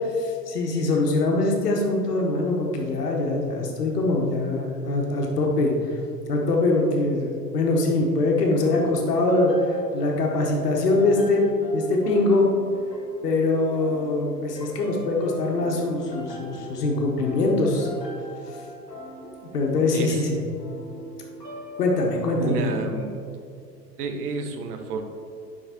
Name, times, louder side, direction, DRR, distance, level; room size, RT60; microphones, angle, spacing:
voice 1, 0.2-5.7 6.3-9.5 9.9-11.4 11.7-12.5 13.2-17.9 19.2-20.4 21.8-22.7, left 2 dB, 70° left, 0 dB, 1.6 m, -23 dB
sound 1, 8.6-22.3, equal, 90° left, 1.6 m, -40 dB
voice 2, 19.9-20.2 22.4-23.2 24.0-25.0, right 4 dB, 65° right, 5 dB, 1.1 m, -30 dB
11.0 x 5.8 x 3.0 m, 2.5 s
figure-of-eight pair, 95°, 48 cm